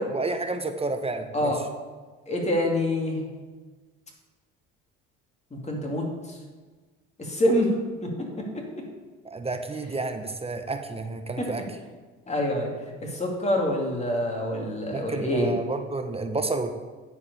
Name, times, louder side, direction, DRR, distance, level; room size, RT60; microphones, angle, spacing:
voice 1, 0.1-1.5 9.2-11.6 14.9-16.8, right 3 dB, 20° right, 7 dB, 0.8 m, -30 dB
voice 2, 2.3-3.3 5.5-6.4 7.2-7.7 8.0-8.4 11.4-11.5 12.3-12.7 13.0-15.5, left 1 dB, 20° left, 0 dB, 2.6 m, -26 dB
9.8 x 4.8 x 6.8 m, 1.4 s
supercardioid pair, 80°, 29 cm